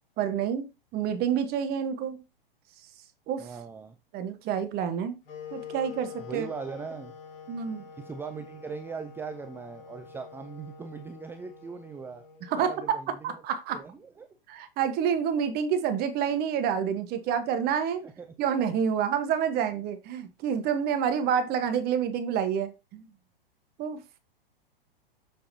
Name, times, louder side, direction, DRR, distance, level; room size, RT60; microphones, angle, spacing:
voice 1, 0.2-2.2 3.3-3.5 4.1-5.2 5.5-6.5 7.5-7.8 12.5-13.8 14.5-18.0 18.4-23.0 23.8-24.0, right 8 dB, 35° right, 1.2 m, -28 dB
voice 2, 3.4-4.0 6.2-7.2 8.0-12.3 12.6-13.4 13.7-14.3 18.0-18.3, right 5 dB, 10° right, 0.4 m, -40 dB
sound 1, 5.2-13.3, left 8 dB, 70° left, 4.1 m, -46 dB
7.2 x 6.7 x 2.8 m
hypercardioid pair, 110°, 29 cm